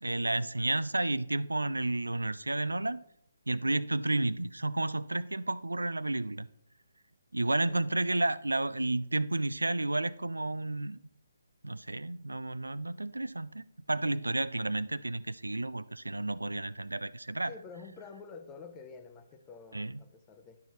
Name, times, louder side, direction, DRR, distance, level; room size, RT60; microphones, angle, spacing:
voice 1, 0.0-3.0 3.5-6.5 7.3-11.0 11.6-17.5 19.7-20.0, right 2 dB, 75° right, 17 dB, 0.3 m, -31 dB
voice 2, 17.5-20.6, left 4 dB, 15° left, 7 dB, 0.7 m, -49 dB
11.0 x 4.6 x 4.0 m, 0.70 s
figure-of-eight pair, 140°, 0 cm